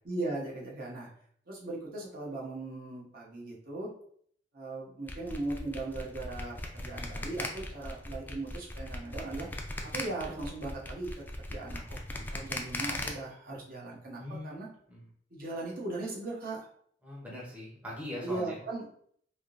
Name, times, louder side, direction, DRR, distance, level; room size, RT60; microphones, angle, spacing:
voice 1, 0.0-1.1 1.5-3.9 4.5-9.5 9.9-14.7 15.3-16.7 18.2-19.0, right 2 dB, 55° right, -3 dB, 0.9 m, -38 dB
sound 1, 5.1-13.1, left 1 dB, 10° left, 0.4 m, -38 dB
voice 2, 14.2-14.5 14.9-15.0 17.0-18.6, left 1 dB, 10° right, -4 dB, 0.7 m, -41 dB
3.5 x 2.7 x 2.5 m, 0.62 s
head